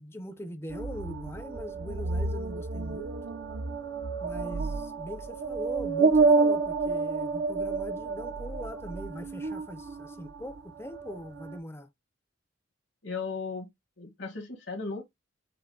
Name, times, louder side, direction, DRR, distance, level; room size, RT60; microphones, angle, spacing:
voice 1, 0.0-3.2 4.2-11.9, left 1 dB, 15° left, 0.6 m, -41 dB
sound 1, 0.7-10.6 10.9-11.6, right 4 dB, 55° right, 0.5 m, -29 dB
voice 2, 13.0-13.7 14.0-15.0, left 4 dB, 65° left, 1.5 m, -36 dB
5.7 x 2.1 x 3.8 m
head